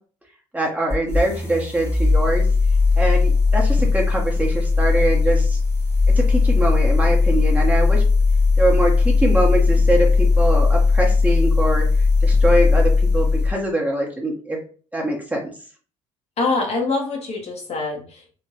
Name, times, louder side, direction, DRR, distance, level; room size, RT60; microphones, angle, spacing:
voice 1, 0.5-2.5 3.0-5.6 6.2-8.0 8.6-11.8 12.2-14.6 14.9-15.5, right 1 dB, 10° right, -1 dB, 1.2 m, -23 dB
sound 1, 0.9-13.6, left 4 dB, 15° left, 1.2 m, -18 dB
voice 2, 16.4-18.3, left 3 dB, 40° left, 0 dB, 1.1 m, -24 dB
3.4 x 3.1 x 2.9 m, 0.40 s
figure-of-eight pair, 55°, 16 cm